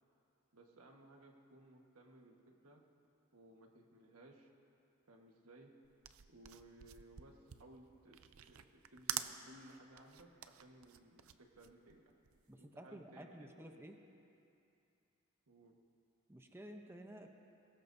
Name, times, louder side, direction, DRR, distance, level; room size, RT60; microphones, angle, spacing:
voice 1, 0.5-2.8 3.3-4.5 5.1-5.7 6.3-8.2 8.5-12.0 12.6-13.8 15.5-15.8, right 1 dB, 90° right, 2 dB, 1.5 m, -60 dB
sound 1, 5.8-12.5, right 11 dB, 70° right, 0.5 m, -47 dB
voice 2, 12.5-13.9 16.3-17.3, equal, 10° right, 3 dB, 0.7 m, -52 dB
22.0 x 18.0 x 2.7 m, 2.7 s
head